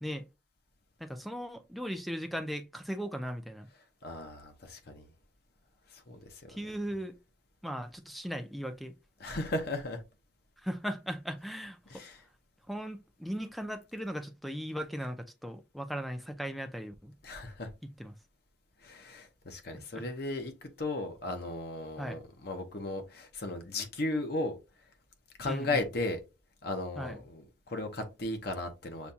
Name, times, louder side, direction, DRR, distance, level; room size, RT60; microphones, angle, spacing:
voice 1, 1.0-3.7 6.5-7.1 7.6-8.9 10.6-11.8 12.7-17.1 18.0-18.1 22.0-22.2 25.4-25.8 27.0-27.2, equal, ahead, 0.5 m, -37 dB
voice 2, 4.0-5.1 5.9-6.6 9.2-10.0 11.9-12.2 17.2-17.7 18.8-24.6 25.4-26.2 26.6-29.1, left 2 dB, 55° left, 0.9 m, -36 dB
7.0 x 2.3 x 2.7 m
head